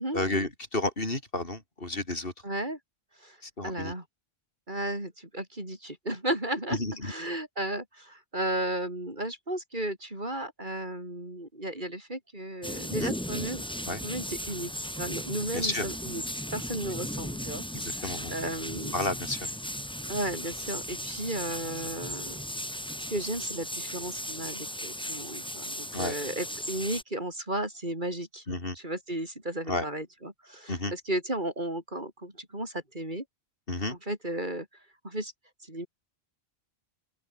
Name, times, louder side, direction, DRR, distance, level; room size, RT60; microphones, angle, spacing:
voice 1, 0.0-2.3 3.4-3.9 6.7-7.1 13.0-13.1 13.9-14.0 15.5-15.9 17.7-18.3 18.9-19.5 25.9-26.1 28.5-28.8 29.7-29.9 30.7-30.9 33.7-34.0, left 2 dB, 60° left, 4.2 m, -31 dB
voice 2, 2.4-2.8 3.2-3.4 3.6-4.0 4.7-13.6 14.0-16.2 16.5-18.9 20.1-22.4 23.1-28.4 28.7-33.2 33.9-34.7 35.0-35.3 35.7-35.9, right 1 dB, 50° right, 6.1 m, -34 dB
sound 1, 12.6-27.0, equal, 5° left, 2.0 m, -36 dB
open air
omnidirectional pair, 1.1 m